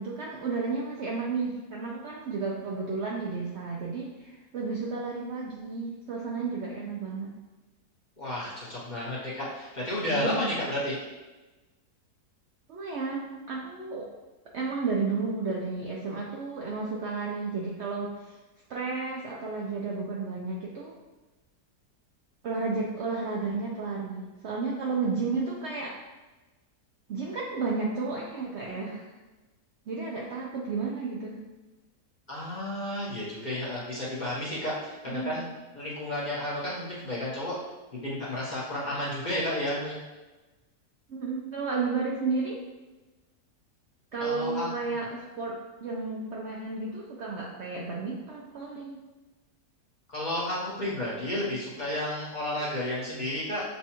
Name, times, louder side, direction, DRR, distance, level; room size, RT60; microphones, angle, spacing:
voice 1, 0.0-7.3 10.1-10.4 12.7-14.1 14.5-18.3 18.7-20.9 22.4-25.9 27.1-29.1 29.9-31.3 35.1-35.4 41.1-42.6 44.1-49.0, right 4 dB, 85° right, -3 dB, 0.6 m, -32 dB
voice 2, 8.2-11.0 32.3-35.4 35.7-37.6 38.0-40.0 44.2-44.7 50.1-53.6, left 1 dB, 35° left, -8 dB, 0.8 m, -32 dB
6.7 x 2.3 x 2.8 m, 1.2 s
omnidirectional pair, 1.8 m